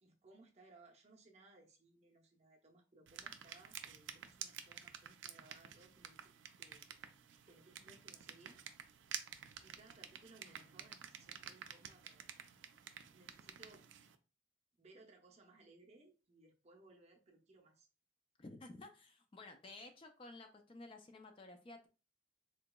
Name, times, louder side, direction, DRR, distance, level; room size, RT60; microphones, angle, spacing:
voice 1, 0.0-6.3 6.6-6.8 7.5-8.6 9.6-12.6 13.1-13.9 14.8-17.9, right 2 dB, 35° right, 1 dB, 0.6 m, -64 dB
sound 1, 3.1-14.1, right 9 dB, 75° right, 0.4 m, -51 dB
voice 2, 18.4-21.9, left 2 dB, 30° left, 6 dB, 0.3 m, -54 dB
3.8 x 2.7 x 2.2 m, 0.33 s
head